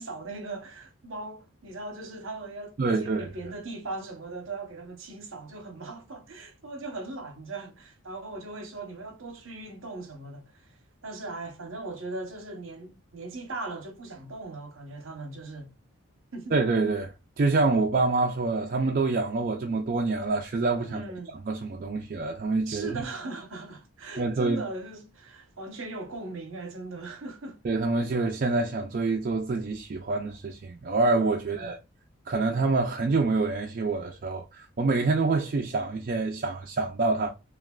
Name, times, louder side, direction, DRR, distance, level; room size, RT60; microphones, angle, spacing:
voice 1, 0.0-10.7 11.0-15.7 16.3-16.6 20.9-21.4 22.7-27.6 28.0-28.1 31.4-31.8, right 2 dB, 65° right, 0.8 m, -39 dB
voice 2, 2.8-3.3 16.5-21.0 21.5-23.0 24.2-24.6 27.6-31.8 32.3-37.3, right 3 dB, 40° right, 0.3 m, -26 dB
3.2 x 2.4 x 2.3 m
head